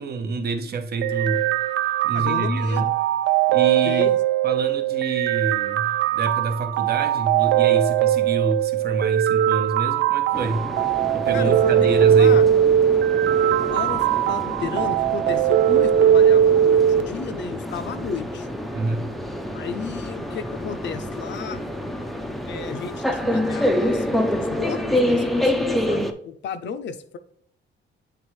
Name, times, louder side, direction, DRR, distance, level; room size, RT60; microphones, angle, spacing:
voice 1, 0.0-1.5 2.0-2.9 3.5-4.1 4.4-10.7 11.1-12.4 18.7-19.1, right 3 dB, 50° right, 0.8 m, -27 dB
sound 1, 1.0-17.0, right 10 dB, 70° right, 0.4 m, -20 dB
voice 2, 2.1-2.9 3.8-4.2 11.3-11.9 12.2-12.4 13.7-18.5 19.5-21.6 22.4-27.2, left 6 dB, 60° left, 0.5 m, -33 dB
sound 2, 10.3-26.1, left 1 dB, ahead, 0.4 m, -27 dB
8.6 x 3.5 x 3.1 m
cardioid pair, 155°, 21 cm